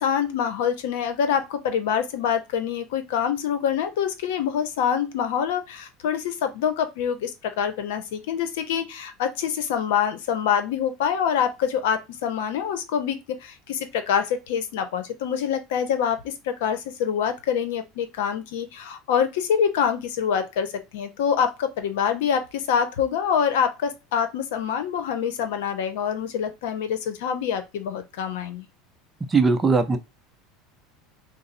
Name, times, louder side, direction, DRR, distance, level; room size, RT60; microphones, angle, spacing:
voice 1, 0.0-28.7, left 8 dB, 80° left, 0.7 m, -25 dB
voice 2, 29.3-30.0, right 4 dB, 15° right, 0.5 m, -19 dB
3.9 x 2.0 x 4.0 m
supercardioid pair, 135°, 0 cm